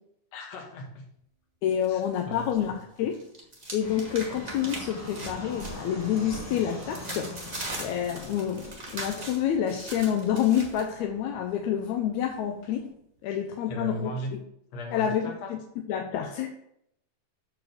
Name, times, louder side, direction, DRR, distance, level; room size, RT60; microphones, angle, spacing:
voice 1, 0.3-1.0 1.9-2.7 13.3-13.4 13.7-14.3 14.7-15.5, equal, 60° left, 2 dB, 2.2 m, -37 dB
voice 2, 1.6-3.2 3.7-12.9 13.2-14.4 14.9-15.6 15.9-16.5, left 9 dB, 75° left, 4 dB, 1.8 m, -28 dB
sound 1, 1.8-2.7 3.0-10.8, right 2 dB, 75° right, 0.3 m, -40 dB
sound 2, 3.5-13.3, right 3 dB, 25° right, 2.5 m, -53 dB
Fixed-wing aircraft airplane, 3.8-12.8, left 2 dB, 15° left, 0.5 m, -44 dB
6.3 x 4.7 x 6.5 m, 0.74 s
omnidirectional pair, 3.7 m